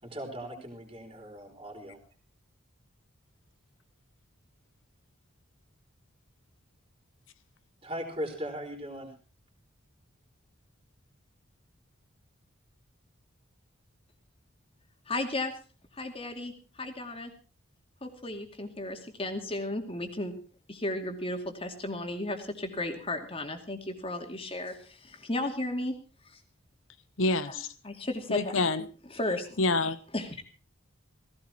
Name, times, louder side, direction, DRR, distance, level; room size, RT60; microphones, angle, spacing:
voice 1, 0.0-2.0 7.8-9.1, equal, 25° right, 4.1 m, -38 dB
voice 2, 15.1-15.5 15.9-17.3 18.0-20.4 20.7-26.0 26.2-26.4 27.5-28.5 29.1-29.6 30.1-30.4, left 1 dB, 25° left, 2.4 m, -34 dB
voice 3, 27.2-27.7 28.3-28.9 29.6-30.0, left 2 dB, 70° left, 1.0 m, -27 dB
17.0 x 16.5 x 4.4 m
head